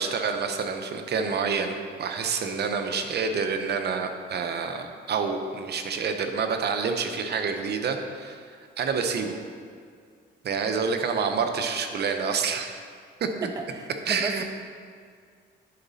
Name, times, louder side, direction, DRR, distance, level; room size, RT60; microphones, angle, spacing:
voice 1, 0.0-8.5 8.8-9.4 10.4-12.9 13.2-13.3 14.0-14.4, right 5 dB, 55° right, 6 dB, 0.8 m, -28 dB
voice 2, 13.4-14.4, right 4 dB, 20° right, 5 dB, 0.4 m, -34 dB
10.5 x 4.1 x 4.1 m, 2.1 s
cardioid pair, 90°, 20 cm